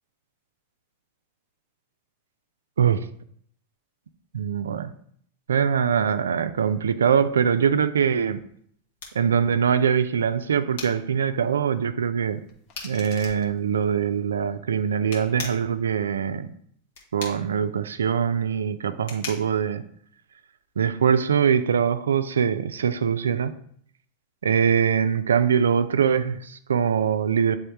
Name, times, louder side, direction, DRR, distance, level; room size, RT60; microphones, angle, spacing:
voice 1, 4.3-4.9 5.5-8.4 9.1-12.4 12.8-16.5 17.1-19.8 20.8-23.5 24.4-27.6, right 7 dB, 90° right, 12 dB, 0.4 m, -23 dB
sound 1, 8.2-20.8, left 4 dB, 75° left, 1.7 m, -43 dB
sound 2, 12.2-14.2, left 3 dB, 50° left, 1.1 m, -49 dB
7.8 x 3.5 x 3.4 m, 0.64 s
hypercardioid pair, 105°, 0 cm